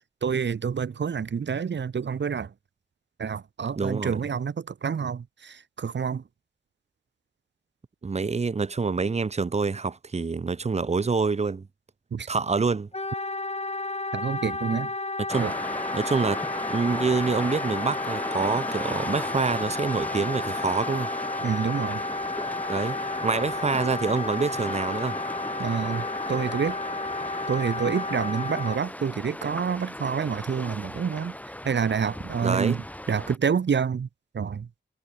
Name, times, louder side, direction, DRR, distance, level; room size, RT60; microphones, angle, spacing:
voice 1, 0.2-2.5 3.2-6.2 12.1-12.3 14.1-14.9 15.4-15.5 21.4-22.0 25.6-26.8 27.5-31.3 31.6-34.1 34.3-34.7, right 6 dB, 65° right, 1.0 m, -28 dB
voice 2, 3.8-4.2 8.0-11.7 12.3-12.9 15.3-15.5 15.9-16.4 16.7-21.1 22.7-23.0 23.2-25.2 32.4-32.8, right 4 dB, 35° right, 0.7 m, -26 dB
Wind instrument woodwind instrument, 12.9-28.8, left 2 dB, 30° left, 5.5 m, -32 dB
sound 1, 15.3-33.4, left 1 dB, 5° left, 7.2 m, -36 dB
wide cardioid pair, 85°, 20 cm